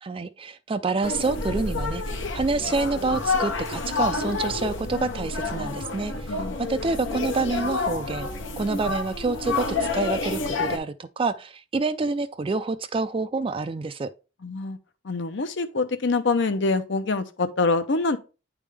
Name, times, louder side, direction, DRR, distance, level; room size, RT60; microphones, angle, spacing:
voice 1, 0.0-8.3 8.6-14.1, right 3 dB, 30° right, 0.4 m, -27 dB
sound 1, 1.0-10.8, left 3 dB, 90° left, 1.0 m, -29 dB
voice 2, 14.4-14.8 15.0-18.2, left 3 dB, 65° left, 0.7 m, -25 dB
9.3 x 3.5 x 3.3 m
head